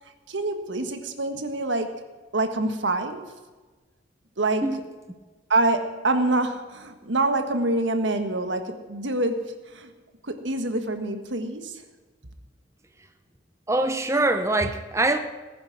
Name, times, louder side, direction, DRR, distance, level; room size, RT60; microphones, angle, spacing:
voice 1, 0.3-2.0 2.3-3.2 4.4-4.8 5.5-9.9 10.2-11.8, right 2 dB, 85° right, 1.6 m, -26 dB
voice 2, 13.7-15.2, right 2 dB, 15° right, 0.9 m, -23 dB
18.5 x 10.5 x 6.0 m
head